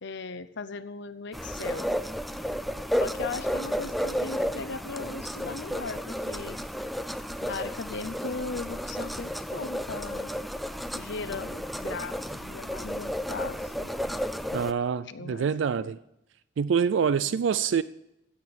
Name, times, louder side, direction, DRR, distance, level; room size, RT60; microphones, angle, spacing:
voice 1, 0.0-1.9 2.9-6.6 7.4-10.3 10.9-13.9 15.0-15.5 15.8-15.9 17.3-17.7, left 4 dB, 65° left, 0.7 m, -38 dB
sound 1, 1.3-14.7, equal, ahead, 0.4 m, -32 dB
voice 2, 14.5-16.0 16.6-17.8, right 6 dB, 65° right, 0.4 m, -26 dB
15.5 x 7.8 x 7.0 m
head